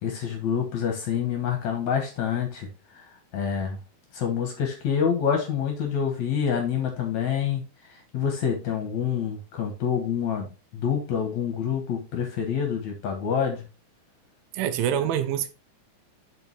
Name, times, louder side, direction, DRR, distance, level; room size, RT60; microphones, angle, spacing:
voice 1, 0.0-3.8 4.1-13.7, left 7 dB, 60° left, 2.3 m, -27 dB
voice 2, 14.5-15.5, right 9 dB, 80° right, 2.3 m, -25 dB
7.1 x 5.8 x 3.4 m
omnidirectional pair, 4.4 m